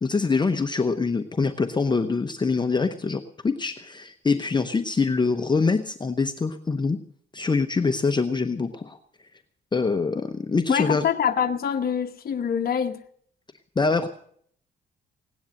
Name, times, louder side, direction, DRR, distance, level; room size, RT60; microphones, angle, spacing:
voice 1, 0.0-7.0 7.3-9.0 9.7-11.0 13.8-14.1, left 4 dB, 20° left, 0.8 m, -24 dB
voice 2, 10.7-13.0, left 7 dB, 50° left, 1.0 m, -25 dB
17.5 x 10.5 x 6.4 m
cardioid pair, 90°, 20 cm